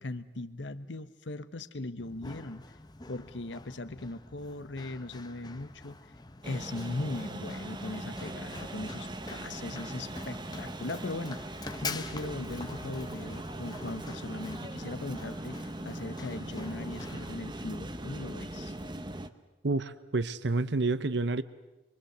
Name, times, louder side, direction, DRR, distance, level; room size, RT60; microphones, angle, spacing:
voice 1, 0.0-2.6 3.1-6.1 6.4-18.7, left 2 dB, 75° left, 11 dB, 1.0 m, -39 dB
Run, 2.0-18.0, left 3 dB, 20° left, 0.9 m, -46 dB
sound 1, 6.4-19.3, right 1 dB, 25° right, 1.0 m, -40 dB
voice 2, 19.6-21.4, right 3 dB, 65° right, 14 dB, 0.8 m, -29 dB
26.5 x 24.0 x 8.0 m, 1.1 s
head